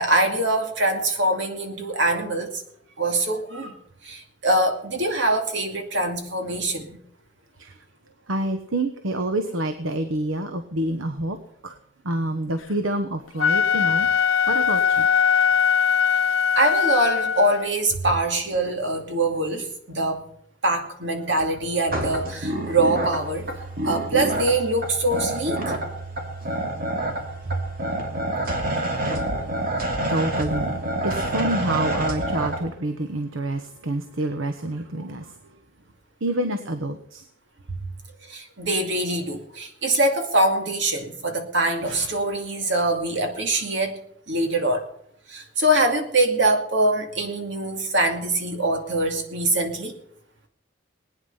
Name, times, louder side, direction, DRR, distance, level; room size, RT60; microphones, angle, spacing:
voice 1, 0.0-2.6 3.0-3.7 4.0-7.0 16.6-20.2 20.6-23.5 23.8-25.8 38.2-44.0 44.3-44.9 45.3-49.9, right 1 dB, 65° right, 4 dB, 2.4 m, -23 dB
voice 2, 8.3-11.4 11.6-11.7 12.0-14.1 14.5-15.1 29.0-29.1 30.1-35.2 36.2-37.2, right 1 dB, 80° right, 8 dB, 1.1 m, -27 dB
Wind instrument woodwind instrument, 13.3-17.7, left 7 dB, 80° left, 0.7 m, -21 dB
sound 1, 21.9-32.6, right 1 dB, 45° right, 2.7 m, -27 dB
20.0 x 9.5 x 5.6 m, 0.69 s
head